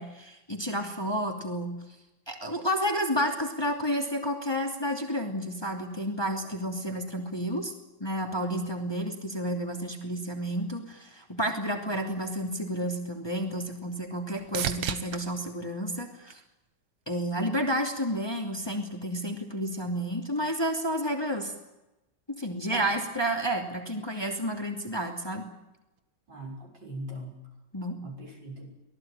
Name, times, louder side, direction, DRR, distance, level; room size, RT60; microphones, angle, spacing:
voice 1, 0.0-1.7 2.3-7.7 8.0-16.4 17.1-21.5 22.3-25.5 27.7-28.0, equal, 15° left, 2 dB, 2.8 m, -31 dB
sound 1, 12.8-17.0 17.5-18.1 26.0-26.1, right 8 dB, 90° right, 2.1 m, -38 dB
voice 2, 22.6-23.0 26.3-27.4 28.0-28.7, right 1 dB, 65° right, 0 dB, 7.0 m, -40 dB
24.5 x 18.0 x 9.1 m, 0.98 s
omnidirectional pair, 2.0 m